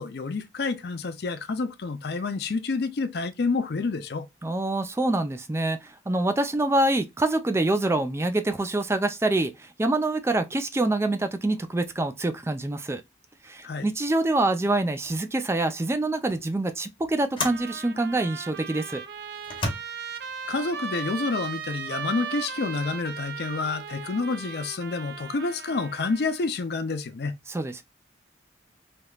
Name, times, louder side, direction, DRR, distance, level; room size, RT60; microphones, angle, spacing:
voice 1, 0.0-4.3 13.6-13.9 20.5-27.3, left 4 dB, 60° left, 0.5 m, -29 dB
voice 2, 4.4-13.0 13.4-19.0 27.5-27.8, right 2 dB, 15° right, 0.3 m, -26 dB
sound 1, 14.4-14.6 15.0-15.3 16.3-16.4 17.4-17.7 18.5-18.6 19.4-19.7, left 2 dB, 30° left, 0.9 m, -32 dB
Trumpet, 17.4-26.5, right 7 dB, 60° right, 0.6 m, -37 dB
3.4 x 2.8 x 2.3 m
head